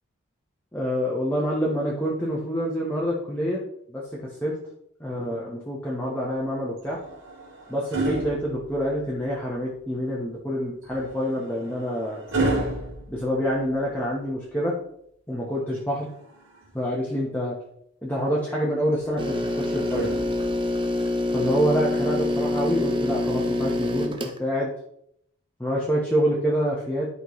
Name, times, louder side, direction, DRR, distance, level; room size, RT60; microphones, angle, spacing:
voice 1, 0.7-3.6 3.9-4.0 4.4-4.6 5.0-7.0 7.7-12.2 13.1-14.7 15.3-16.1 16.7-17.6 18.0-20.1 21.3-24.7 25.6-27.1, equal, 10° left, -5 dB, 1.2 m, -26 dB
sound 1, 6.8-9.2 10.8-14.0 15.8-16.9 18.9-20.8 22.0-22.2, right 2 dB, 70° right, 3.3 m, -32 dB
sound 2, 19.2-24.4, left 2 dB, 25° right, 0.7 m, -26 dB
11.0 x 5.5 x 3.2 m, 0.72 s
head